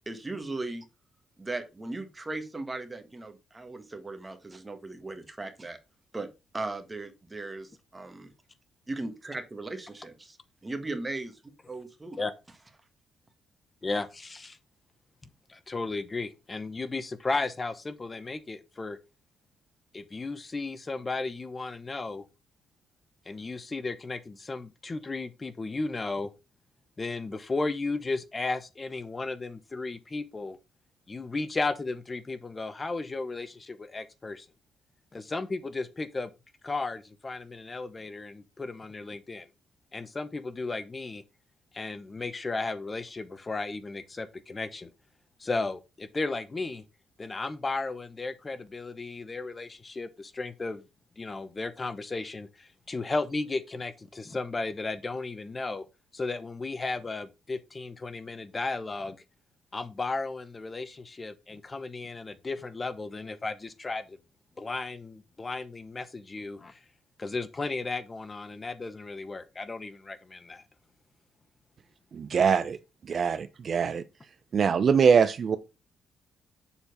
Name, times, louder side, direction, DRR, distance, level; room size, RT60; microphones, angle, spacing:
voice 1, 0.1-0.8 1.4-5.8 6.1-6.3 6.5-8.3 8.9-10.4 10.6-11.4 11.7-12.2, right 2 dB, 20° right, 1.6 m, -37 dB
voice 2, 13.8-14.6 15.5-19.0 19.9-22.3 23.3-26.3 27.0-30.6 31.1-34.5 35.1-36.3 36.6-39.5 39.9-41.2 41.7-44.9 45.4-46.8 47.2-50.8 51.2-55.9 56.1-59.2 59.7-64.2 64.6-66.8 67.2-70.6, left 3 dB, 25° left, 0.8 m, -34 dB
voice 3, 72.1-72.8 73.1-74.0 74.5-75.6, right 6 dB, 50° right, 0.6 m, -23 dB
7.0 x 4.5 x 5.2 m
cardioid pair, 90°, 0 cm